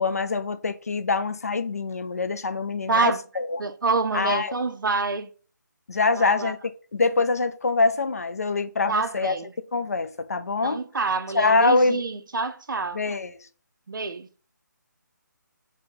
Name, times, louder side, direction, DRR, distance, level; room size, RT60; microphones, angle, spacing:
voice 1, 0.0-3.6 4.1-4.6 5.9-6.6 6.9-9.3 9.7-10.8 11.3-12.0 12.9-13.3, left 3 dB, 50° left, 0.3 m, -24 dB
voice 2, 2.9-3.2 3.6-5.3 6.1-6.5 8.9-9.5 10.6-13.0 13.9-14.3, right 4 dB, 85° right, 0.6 m, -27 dB
2.8 x 2.7 x 3.6 m
hypercardioid pair, 180°, 11 cm